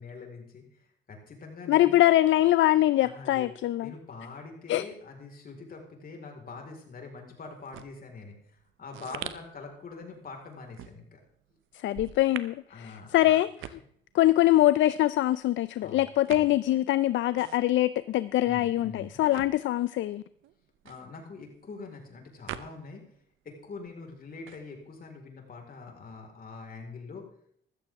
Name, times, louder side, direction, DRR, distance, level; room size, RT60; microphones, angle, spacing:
voice 1, 0.0-2.0 3.0-3.5 3.8-11.2 12.7-13.3 15.8-16.5 18.4-19.2 20.8-23.0 23.4-27.3, left 4 dB, 45° left, 2 dB, 4.6 m, -44 dB
voice 2, 1.7-3.9 4.7-4.8 11.7-13.8 14.1-20.2, left 14 dB, 70° left, 16 dB, 0.5 m, -23 dB
sound 1, 7.5-23.2 23.5-25.1, right 12 dB, 90° right, 0.9 m, -46 dB
14.5 x 13.5 x 3.6 m, 0.67 s
cardioid pair, 90°, 20 cm